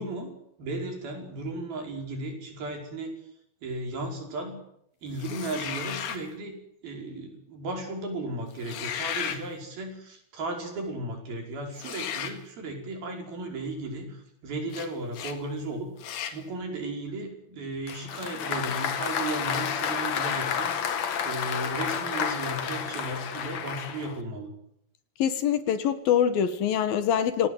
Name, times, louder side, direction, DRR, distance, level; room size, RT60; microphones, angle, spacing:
voice 1, 0.0-3.1 3.6-4.6 5.0-6.6 6.8-15.9 16.3-20.9 21.2-24.5, right 2 dB, 70° right, 7.2 m, -35 dB
sound 1, 5.2-6.3 8.5-9.4 11.8-12.4 14.7-14.9 15.1-15.4 16.0-16.4, left 8 dB, 85° left, 4.1 m, -34 dB
Applause, 17.9-24.2, left 7 dB, 50° left, 2.5 m, -30 dB
voice 2, 25.2-27.5, left 9 dB, 70° left, 3.3 m, -24 dB
27.5 x 18.5 x 8.2 m
omnidirectional pair, 4.4 m